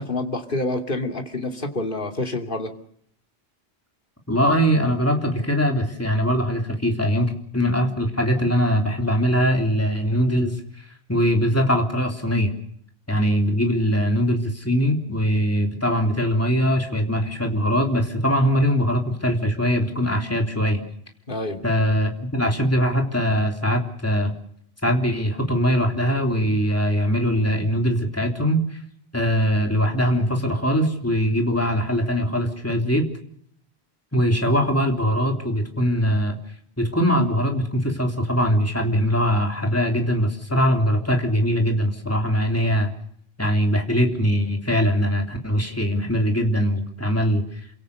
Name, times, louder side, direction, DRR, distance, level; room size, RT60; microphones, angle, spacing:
voice 1, 0.0-2.7 21.3-21.6, left 2 dB, 50° left, 4 dB, 2.9 m, -27 dB
voice 2, 4.3-10.6 11.1-12.5 13.1-20.8 21.6-24.3 24.8-28.8 29.1-33.0 34.1-36.4 36.8-42.9 43.4-47.4, equal, 15° left, 3 dB, 3.3 m, -21 dB
29.0 x 17.0 x 6.6 m, 0.66 s
omnidirectional pair, 1.1 m